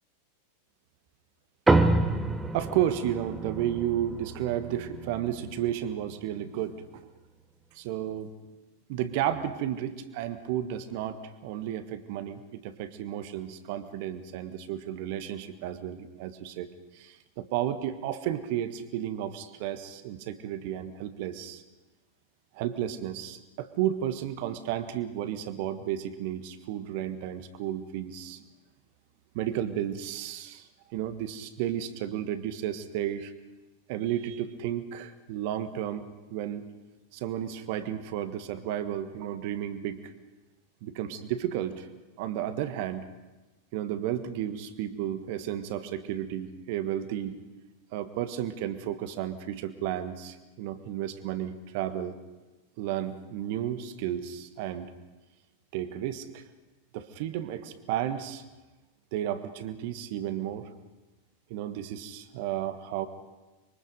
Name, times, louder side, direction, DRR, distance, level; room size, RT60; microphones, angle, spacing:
sound 1, 1.7-6.4, right 2 dB, 10° right, 1.2 m, -28 dB
voice 1, 2.5-7.0 7.7-8.3 8.9-21.6 22.5-28.4 29.3-33.3 33.9-36.0 36.3-36.6 37.1-40.1 40.8-41.9 42.2-43.1 43.7-47.4 47.9-52.1 52.8-54.9 55.7-56.4 56.9-58.4 59.1-60.7 61.5-63.1, right 11 dB, 50° right, 11 dB, 1.5 m, -33 dB
25.0 x 23.5 x 5.3 m, 1.1 s
figure-of-eight pair, 90°, 0 cm